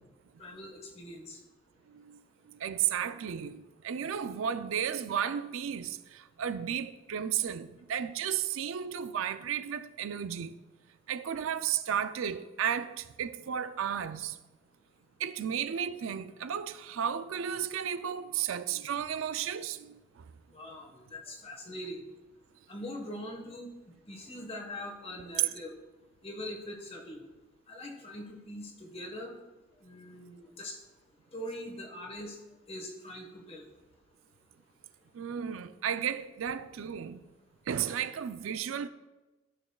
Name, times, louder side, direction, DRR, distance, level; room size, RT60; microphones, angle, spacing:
voice 1, 0.4-1.4 20.5-22.0 22.7-23.7 24.1-25.7 26.2-27.2 27.7-29.3 29.8-30.8 31.3-32.4 32.7-33.6, left 1 dB, 30° left, 1.2 m, -42 dB
voice 2, 1.9-2.2 2.5-10.6 11.1-14.4 15.2-20.3 35.1-37.2 37.7-38.9, right 8 dB, 85° right, 0.4 m, -33 dB
13.5 x 6.3 x 2.3 m
head